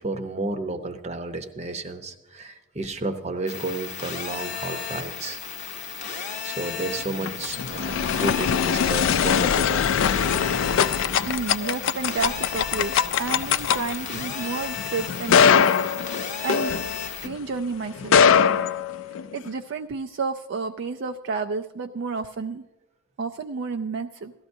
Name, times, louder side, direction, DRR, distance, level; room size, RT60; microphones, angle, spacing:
voice 1, 0.0-5.4 6.1-9.9, right 2 dB, 30° right, 7 dB, 0.7 m, -32 dB
sound 1, 3.5-17.3, left 7 dB, 35° left, 0.7 m, -34 dB
sound 2, 7.0-17.4 18.0-19.5, left 7 dB, 65° left, 0.3 m, -22 dB
voice 2, 11.3-16.2 16.4-16.7 17.2-18.2 19.3-22.6 23.2-24.3, right 4 dB, 55° right, 6 dB, 0.4 m, -31 dB
17.5 x 13.5 x 2.6 m, 1.0 s
head